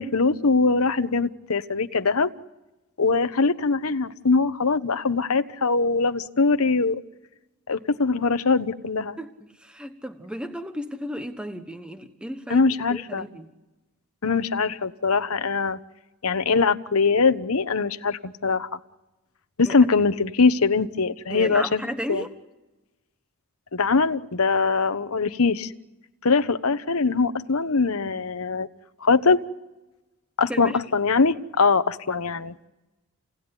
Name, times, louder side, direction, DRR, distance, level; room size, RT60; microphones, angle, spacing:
voice 1, 0.0-2.3 3.0-7.0 7.7-9.2 12.5-13.3 14.2-15.8 16.2-18.7 19.6-21.8 22.1-22.2 23.7-25.7 26.2-28.7 29.0-29.4 30.4-32.5, left 4 dB, 75° left, 10 dB, 1.1 m, -22 dB
voice 2, 9.2-13.5 19.6-19.8 21.3-22.3 30.5-30.8, equal, 5° right, 7 dB, 1.2 m, -34 dB
29.5 x 18.5 x 9.8 m, 1.1 s
head